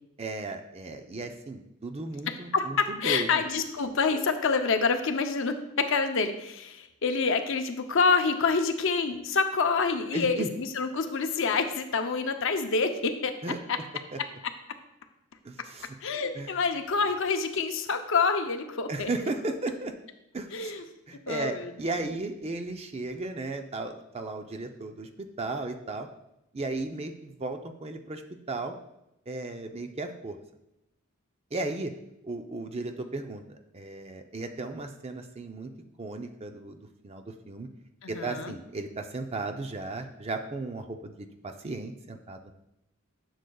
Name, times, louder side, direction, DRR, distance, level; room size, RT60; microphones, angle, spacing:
voice 1, 0.2-3.4 10.1-10.5 13.4-13.6 14.1-14.2 15.4-16.0 16.3-16.6 18.9-19.9 20.3-20.8 21.1-25.1 25.4-26.1 26.5-28.2 28.5-28.8 29.3-30.4 31.5-31.9 32.2-35.7 36.0-37.7 38.1-42.5, right 2 dB, 30° right, 6 dB, 0.5 m, -35 dB
voice 2, 2.5-13.3 13.7-13.8 16.0-19.1 20.5-20.8 21.3-22.0 38.0-38.5, left 4 dB, 60° left, 7 dB, 0.6 m, -27 dB
10.0 x 6.4 x 2.3 m, 0.86 s
head